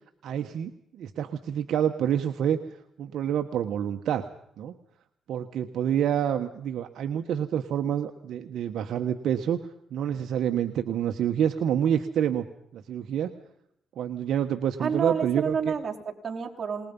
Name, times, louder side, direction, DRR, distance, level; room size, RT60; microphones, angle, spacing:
voice 1, 0.2-4.3 4.6-4.7 5.3-9.6 9.9-12.4 12.7-13.3 14.0-15.7, right 9 dB, 70° right, 6 dB, 1.4 m, -28 dB
voice 2, 14.8-16.9, right 6 dB, 40° right, -1 dB, 4.6 m, -29 dB
26.5 x 21.0 x 5.5 m, 0.72 s
cardioid pair, 90°, 0 cm